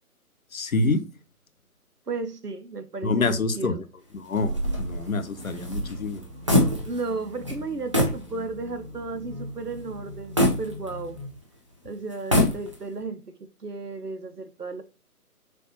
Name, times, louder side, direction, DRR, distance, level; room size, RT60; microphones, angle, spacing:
voice 1, 0.5-1.0 3.0-3.8 4.1-6.2, left 3 dB, 65° left, 0.9 m, -26 dB
voice 2, 2.1-3.8 6.9-11.2 11.8-14.8, right 3 dB, 90° right, 1.0 m, -34 dB
sound 1, 4.3-11.3, equal, 50° right, 2.8 m, -42 dB
sound 2, 4.4-7.2 7.4-7.6 7.9-8.2 8.7-8.8 10.4-11.4 12.1-13.0, left 1 dB, 20° right, 0.6 m, -24 dB
6.5 x 2.6 x 2.9 m
figure-of-eight pair, 145°, 45 cm